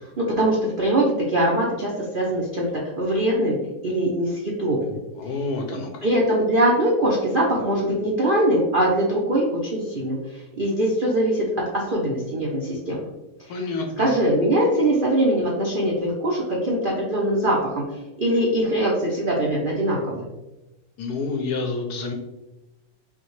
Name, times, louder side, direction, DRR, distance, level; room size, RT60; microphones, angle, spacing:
voice 1, 0.2-3.6 3.8-5.0 5.7-11.4 11.7-13.0 14.0-17.8 18.2-20.3, right 1 dB, 70° right, -4 dB, 0.5 m, -22 dB
voice 2, 5.2-6.1 13.5-14.1 21.0-22.1, left 3 dB, 70° left, 3 dB, 1.0 m, -28 dB
5.6 x 2.3 x 3.1 m, 1.0 s
omnidirectional pair, 2.0 m